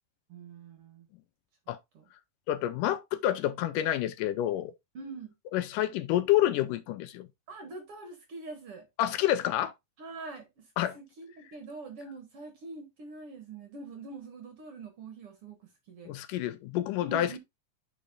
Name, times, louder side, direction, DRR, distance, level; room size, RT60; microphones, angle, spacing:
voice 1, 0.3-1.1 1.9-2.0 4.9-5.3 7.5-8.9 10.0-16.1 17.0-17.4, right 3 dB, 50° right, 2.0 m, -44 dB
voice 2, 2.5-4.7 5.5-7.3 9.0-9.7 10.8-11.0 16.1-17.4, left 13 dB, 80° left, 2.2 m, -28 dB
10.0 x 5.3 x 2.5 m
omnidirectional pair, 3.9 m